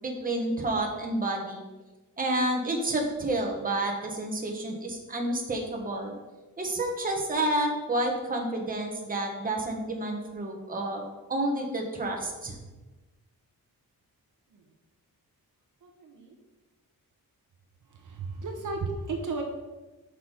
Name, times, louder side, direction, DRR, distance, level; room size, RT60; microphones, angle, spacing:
voice 1, 0.0-1.6 2.2-6.1 6.6-12.6, right 1 dB, 25° right, 1 dB, 1.1 m, -30 dB
voice 2, 15.8-16.4 17.9-19.4, right 3 dB, 60° right, 3 dB, 0.9 m, -34 dB
5.9 x 5.9 x 4.9 m, 1.2 s
wide cardioid pair, 155°, 36 cm